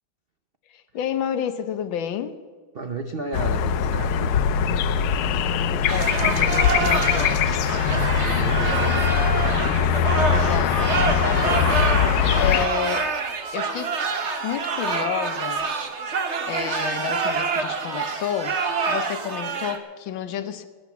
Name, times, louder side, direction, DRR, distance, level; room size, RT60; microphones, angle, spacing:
voice 1, 0.7-2.3 5.6-7.3 10.3-11.7 11.9-13.1 13.5-13.9 14.4-15.7 16.5-18.6 18.8-20.6, left 9 dB, 70° left, 11 dB, 1.6 m, -30 dB
voice 2, 2.7-4.3 7.7-9.3, right 4 dB, 85° right, 6 dB, 0.5 m, -33 dB
sound 1, 3.3-12.7, left 7 dB, 90° left, 1.5 m, -21 dB
sound 2, 5.9-19.8, right 4 dB, 40° right, 1.1 m, -27 dB
18.5 x 9.1 x 7.3 m, 1.5 s
omnidirectional pair, 2.3 m